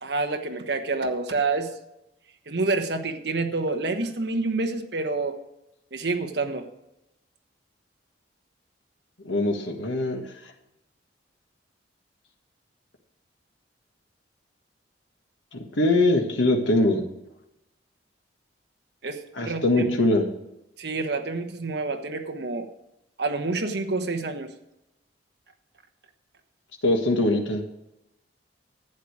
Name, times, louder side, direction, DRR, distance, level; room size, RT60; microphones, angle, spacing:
voice 1, 0.0-1.7 2.5-5.4 5.9-6.7 19.0-19.8 20.8-22.7 23.2-24.5, right 3 dB, 60° right, 6 dB, 1.2 m, -28 dB
voice 2, 9.2-10.2 15.5-17.1 19.4-20.3 26.8-27.6, left 2 dB, 90° left, 2 dB, 1.6 m, -22 dB
11.5 x 8.7 x 4.9 m, 0.87 s
head